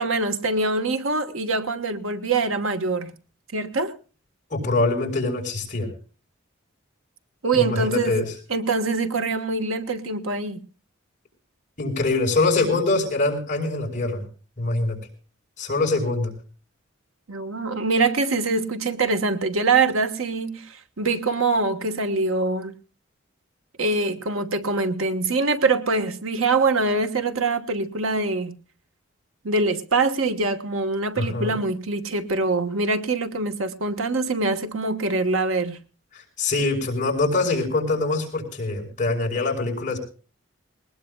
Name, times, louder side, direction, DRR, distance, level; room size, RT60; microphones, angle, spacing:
voice 1, 0.0-3.1 3.5-3.9 7.4-8.1 8.5-10.6 17.3-22.8 23.8-28.5 29.4-35.8, right 3 dB, 80° right, 1.3 m, -24 dB
voice 2, 4.5-5.9 7.5-8.3 11.8-14.2 14.6-15.0 15.6-16.3 31.2-31.5 36.1-40.0, left 3 dB, 35° left, 4.7 m, -24 dB
20.5 x 20.0 x 2.3 m
head